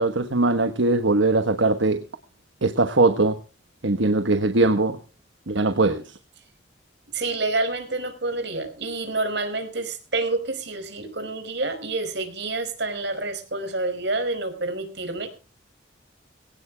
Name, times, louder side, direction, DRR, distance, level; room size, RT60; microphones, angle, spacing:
voice 1, 0.0-2.0 2.6-3.4 3.8-5.0 5.5-6.2, right 2 dB, 80° right, 9 dB, 1.3 m, -21 dB
voice 2, 7.1-15.3, right 2 dB, 65° right, 8 dB, 4.8 m, -28 dB
22.5 x 17.0 x 2.3 m, 0.34 s
head